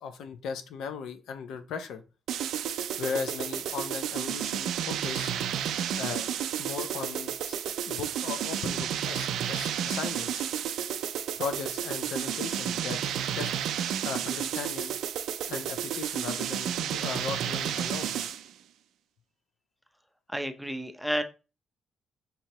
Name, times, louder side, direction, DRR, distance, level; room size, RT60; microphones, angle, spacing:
voice 1, 0.0-2.0 3.0-5.3 5.9-6.2 6.6-7.6 7.8-10.4 11.4-13.0 13.3-13.5 14.0-14.9 15.5-18.1, left 6 dB, 80° left, 0.5 m, -37 dB
sound 1, 2.3-18.5, right 9 dB, 80° right, 0.3 m, -31 dB
voice 2, 20.3-21.2, equal, ahead, 0.5 m, -31 dB
5.3 x 2.8 x 2.9 m
cardioid pair, 90°, 0 cm